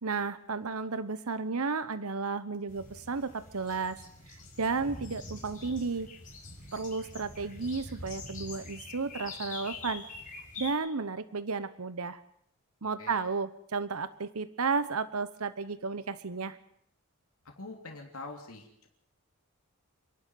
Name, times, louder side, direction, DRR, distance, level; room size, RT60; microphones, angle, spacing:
voice 1, 0.0-4.0 4.3-6.1 6.7-10.0 10.6-12.2 12.8-16.6, right 4 dB, 85° right, 14 dB, 1.0 m, -33 dB
sound 1, 2.7-10.7, left 3 dB, 35° left, 5.3 m, -45 dB
voice 2, 17.6-18.9, left 3 dB, 80° left, 2 dB, 3.3 m, -44 dB
28.0 x 11.5 x 9.3 m, 0.69 s
head